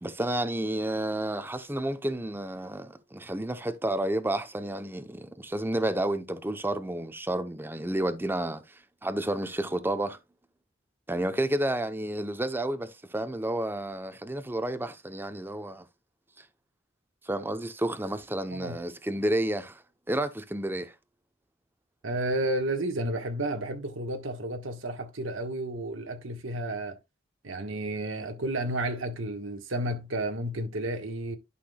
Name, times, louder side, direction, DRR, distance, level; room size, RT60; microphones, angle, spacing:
voice 1, 0.0-10.2 11.1-15.9 16.4-16.5 17.2-19.8 20.1-20.9, right 1 dB, 10° right, 0.7 m, -31 dB
voice 2, 22.0-27.0 27.4-31.4, right 1 dB, 80° right, 1.4 m, -32 dB
11.5 x 5.9 x 2.3 m
head